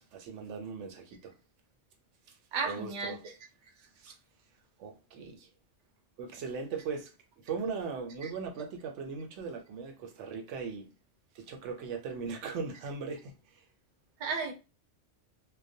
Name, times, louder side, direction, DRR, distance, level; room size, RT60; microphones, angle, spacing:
voice 1, 0.0-1.3 2.3-2.4 2.6-3.2 4.8-5.5 6.2-10.9 11.3-13.6, right 5 dB, 80° right, 0.9 m, -39 dB
voice 2, 2.5-3.2 4.0-4.1 8.2-8.3 14.2-14.5, right 5 dB, 55° right, 0.7 m, -34 dB
2.3 x 2.1 x 2.6 m
omnidirectional pair, 1.2 m